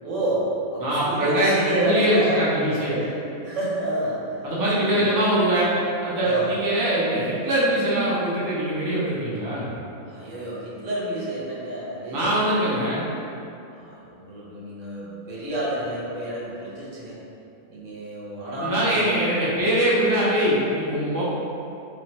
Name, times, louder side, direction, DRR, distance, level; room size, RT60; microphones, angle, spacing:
voice 1, 0.0-2.4 2.7-3.2 3.4-4.5 4.7-5.2 6.2-6.5 10.1-12.4 13.7-17.2 17.7-19.4, right 1 dB, 60° right, -7 dB, 1.1 m, -29 dB
voice 2, 0.8-3.0 4.4-5.7 6.0-9.6 12.1-13.0 18.5-21.2, right 1 dB, 30° right, -8 dB, 0.3 m, -22 dB
3.3 x 3.3 x 3.0 m, 2.7 s
omnidirectional pair, 1.5 m